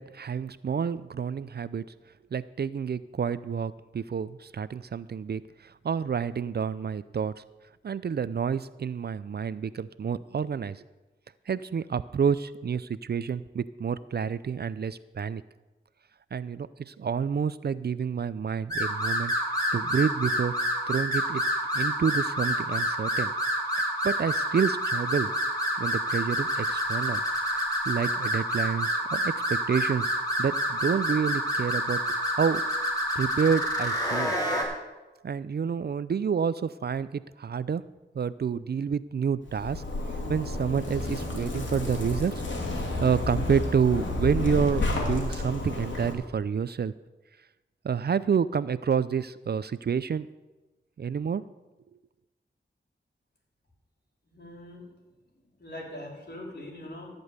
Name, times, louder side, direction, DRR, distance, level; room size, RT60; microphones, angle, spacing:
voice 1, 0.0-1.8 2.3-7.4 7.8-10.8 11.5-15.4 16.3-19.3 19.7-20.5 20.9-21.4 21.7-23.3 24.0-25.3 25.7-27.2 27.5-32.6 33.2-34.4 35.2-37.8 38.1-39.8 40.3-42.4 43.0-46.9 47.8-50.3 51.0-51.4, right 6 dB, 55° right, 17 dB, 0.5 m, -29 dB
sound 1, 18.7-34.6, equal, 20° left, 4.2 m, -28 dB
Zipper (clothing), 39.5-46.1, left 2 dB, 75° left, 2.8 m, -31 dB
voice 2, 54.3-54.9 55.6-57.1, left 1 dB, 60° left, -1 dB, 3.9 m, -42 dB
15.0 x 5.3 x 8.1 m, 1.1 s
cardioid pair, 50°, 19 cm